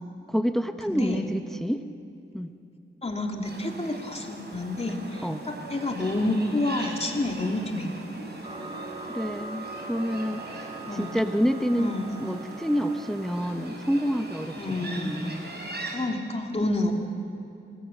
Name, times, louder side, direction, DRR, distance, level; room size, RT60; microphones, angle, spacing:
voice 1, 0.3-1.8 2.3-2.5 5.2-5.4 8.5-8.6 9.1-10.6 10.9-11.9 12.2-14.6 15.0-15.5 16.6-16.9, equal, ahead, 7 dB, 0.9 m, -28 dB
voice 2, 0.9-1.3 3.0-7.9 10.9-11.2 11.8-12.2 14.6-15.2 15.8-16.9, left 2 dB, 30° left, 1 dB, 3.0 m, -29 dB
sound 1, 3.4-16.0, right 2 dB, 55° right, 5.3 m, -41 dB
sound 2, 8.4-13.4, right 3 dB, 30° right, 2.8 m, -40 dB
27.0 x 19.5 x 9.0 m, 2.7 s
wide cardioid pair, 120°, 21 cm